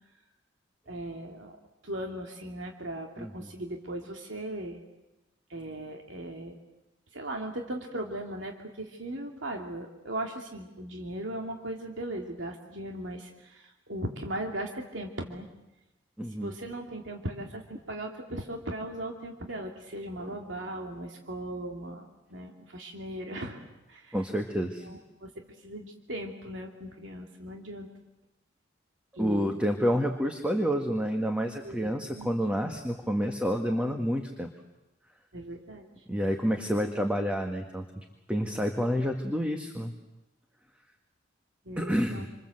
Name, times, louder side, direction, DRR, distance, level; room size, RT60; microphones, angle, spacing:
voice 1, 0.9-1.6 1.8-4.8 5.5-6.6 7.1-15.5 16.2-24.2 24.8-25.3 25.6-27.9 29.1-29.6 31.6-32.3 35.3-36.0 41.6-42.3, right 1 dB, 75° right, 2 dB, 2.7 m, -38 dB
voice 2, 16.2-16.5 24.1-24.9 29.2-34.5 36.1-39.9 41.8-42.3, equal, 5° right, 4 dB, 1.8 m, -29 dB
27.5 x 27.0 x 7.9 m, 0.98 s
head